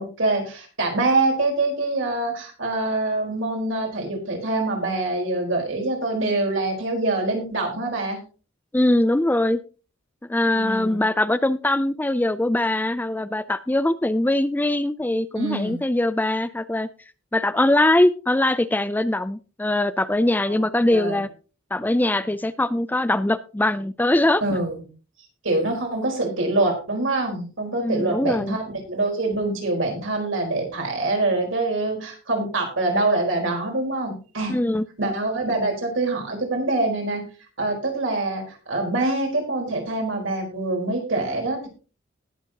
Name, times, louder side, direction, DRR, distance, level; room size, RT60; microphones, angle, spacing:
voice 1, 0.0-8.2 10.5-11.0 15.3-15.8 20.5-20.6 20.9-21.2 24.4-24.8 25.4-34.5 35.0-37.2 37.6-41.7, right 2 dB, 65° right, 1 dB, 4.4 m, -25 dB
voice 2, 8.7-9.6 10.3-16.9 17.3-21.3 21.7-24.4 27.8-28.6 34.5-34.8, left 1 dB, 10° left, 14 dB, 0.4 m, -22 dB
19.5 x 7.2 x 2.9 m, 0.35 s
head